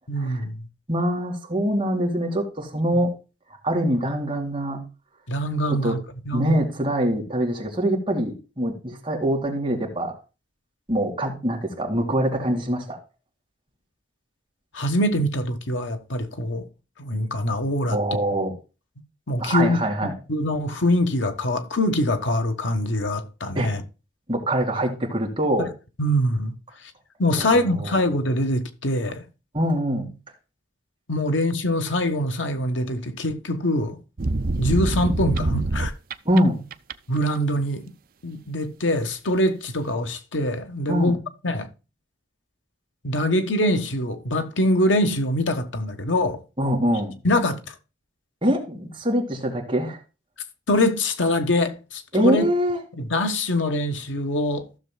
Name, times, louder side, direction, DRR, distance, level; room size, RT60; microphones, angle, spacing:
voice 1, 0.1-0.6 5.3-6.0 6.3-6.6 14.7-16.7 17.0-18.0 19.3-19.8 20.3-23.8 26.0-26.5 27.2-29.2 31.1-34.0 34.6-35.9 37.1-37.8 38.2-41.2 41.4-41.7 43.0-46.4 47.2-47.7 50.7-52.5 53.0-54.7, left 1 dB, 85° left, 1.4 m, -23 dB
voice 2, 0.9-3.1 3.6-4.9 5.7-6.0 6.3-10.2 10.9-13.0 17.9-18.5 19.4-20.1 23.5-23.8 24.3-25.7 27.3-28.0 29.5-30.1 36.2-36.6 40.9-41.2 46.6-47.2 48.4-50.0 52.1-52.8, equal, 25° right, 2.3 m, -24 dB
sound 1, 34.2-36.4 36.7-37.2, right 2 dB, 50° right, 0.6 m, -25 dB
15.0 x 6.8 x 2.3 m
head